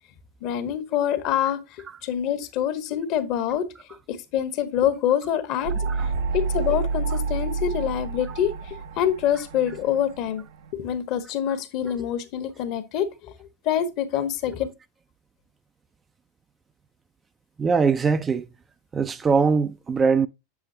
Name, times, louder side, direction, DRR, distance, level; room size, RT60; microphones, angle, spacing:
voice 1, 0.4-1.6 2.0-3.7 4.1-5.7 6.3-10.4 10.7-13.1 13.6-14.7, left 10 dB, 50° left, 1.2 m, -25 dB
sound 1, 5.7-10.7, right 4 dB, 65° right, 0.8 m, -29 dB
voice 2, 17.6-18.5 18.9-20.3, right 5 dB, 20° right, 0.5 m, -21 dB
8.3 x 7.0 x 2.7 m
hypercardioid pair, 90°, 0 cm